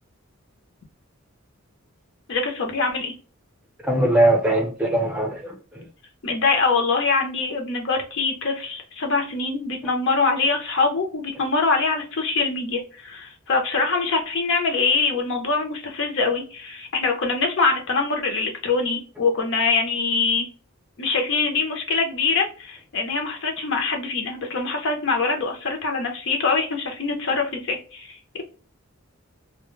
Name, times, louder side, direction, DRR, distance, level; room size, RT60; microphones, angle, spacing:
voice 1, 2.3-3.1 6.2-20.5 21.0-28.4, left 4 dB, 60° left, 0.6 m, -24 dB
voice 2, 3.8-5.8, right 1 dB, 5° right, 0.6 m, -21 dB
2.2 x 2.0 x 3.0 m
head